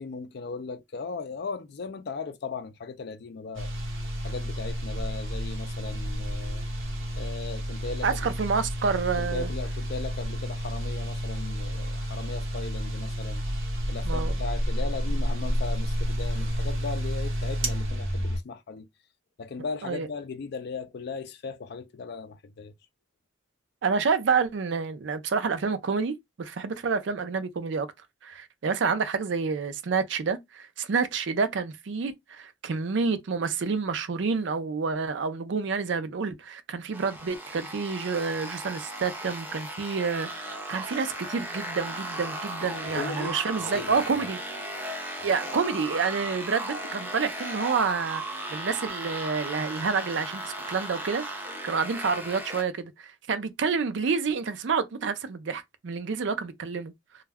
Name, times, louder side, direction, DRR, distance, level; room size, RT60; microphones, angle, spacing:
voice 1, 0.0-3.7 4.2-6.6 7.1-8.3 9.2-13.4 13.9-18.9 19.4-22.7 42.9-44.0, left 4 dB, 55° left, 0.4 m, -37 dB
sound 1, 3.5-18.4, equal, 80° right, 0.9 m, -30 dB
voice 2, 8.0-9.5 14.0-14.4 19.8-20.1 23.8-27.9 28.2-44.4 45.2-48.2 48.5-51.2 51.6-56.9, right 5 dB, 65° right, 0.4 m, -28 dB
sound 2, 36.9-52.6, right 1 dB, 10° right, 0.5 m, -36 dB
2.3 x 2.1 x 3.3 m
head